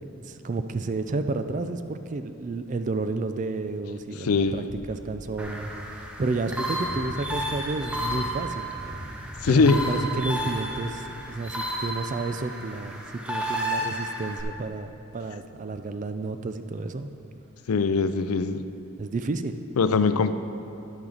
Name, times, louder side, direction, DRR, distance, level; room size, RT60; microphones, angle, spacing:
voice 1, 0.3-5.7 6.0-8.7 9.5-13.0 13.3-17.1 19.0-19.6, right 3 dB, 35° right, 10 dB, 0.3 m, -31 dB
voice 2, 4.2-4.7 9.4-9.8 17.7-18.6 19.8-20.3, left 4 dB, 80° left, 11 dB, 0.4 m, -21 dB
sound 1, 4.3-12.5, equal, 25° left, 1.7 m, -44 dB
sound 2, 5.4-14.4, equal, 5° right, 0.7 m, -32 dB
10.5 x 8.8 x 3.9 m, 2.7 s
head